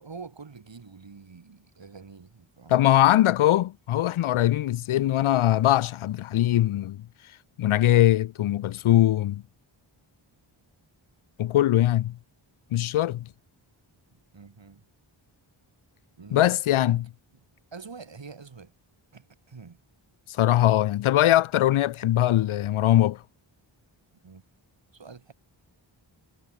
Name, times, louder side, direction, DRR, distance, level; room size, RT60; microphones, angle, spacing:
voice 1, 0.0-3.1 7.8-7.9 14.3-14.9 16.2-17.0 17.7-18.7 19.1-19.8 24.2-24.4 24.9-25.3, right 5 dB, 65° right, 7.3 m, -46 dB
voice 2, 2.7-7.0 7.6-9.4 11.4-12.2 12.7-13.2 16.3-17.0 20.4-23.2, left 13 dB, 85° left, 0.5 m, -21 dB
wide cardioid pair, 80°, 48 cm